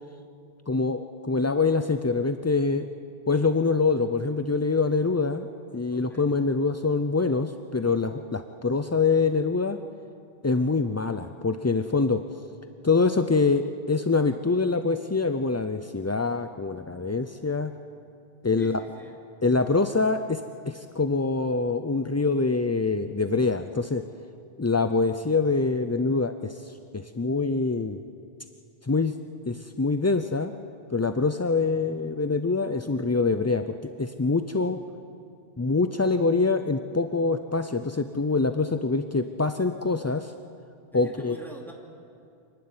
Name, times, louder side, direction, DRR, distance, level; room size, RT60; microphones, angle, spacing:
voice 1, 0.7-2.9 3.3-5.5 5.7-9.8 10.4-12.2 12.8-17.7 18.4-18.8 19.4-24.0 24.6-28.0 28.8-29.2 29.5-30.5 30.9-34.8 35.6-40.3 40.9-41.4, left 4 dB, 25° left, 9 dB, 0.3 m, -25 dB
voice 2, 5.9-6.3 18.6-19.2 40.9-41.7, right 1 dB, ahead, -1 dB, 2.7 m, -45 dB
26.0 x 11.5 x 9.6 m, 2.5 s
omnidirectional pair, 1.0 m